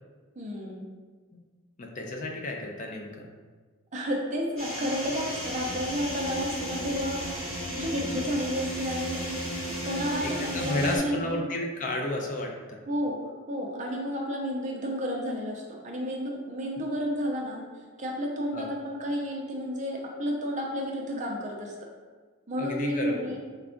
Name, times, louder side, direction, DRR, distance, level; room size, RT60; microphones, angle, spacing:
voice 1, 0.4-0.9 3.9-7.2 7.7-9.2 9.6-11.5 12.9-13.2 13.5-17.6 18.0-21.7 22.5-23.4, equal, 35° right, -1 dB, 0.5 m, -31 dB
voice 2, 1.8-3.3 9.9-12.8 18.5-18.7 22.6-23.4, left 1 dB, 35° left, 1 dB, 0.4 m, -32 dB
sound 1, 4.6-11.0, equal, 5° left, 1.0 m, -34 dB
3.3 x 2.3 x 3.7 m, 1.4 s
head